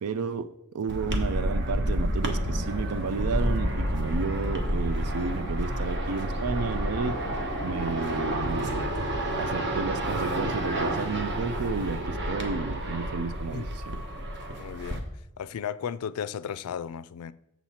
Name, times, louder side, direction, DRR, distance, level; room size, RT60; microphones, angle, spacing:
voice 1, 0.0-7.2 7.6-8.9 9.4-14.0, right 5 dB, 90° right, 0.5 m, -32 dB
sound 1, 0.9-15.0, equal, 55° right, 1.1 m, -29 dB
voice 2, 14.5-15.1 15.4-17.3, left 8 dB, 80° left, 0.4 m, -34 dB
7.3 x 7.0 x 4.2 m
head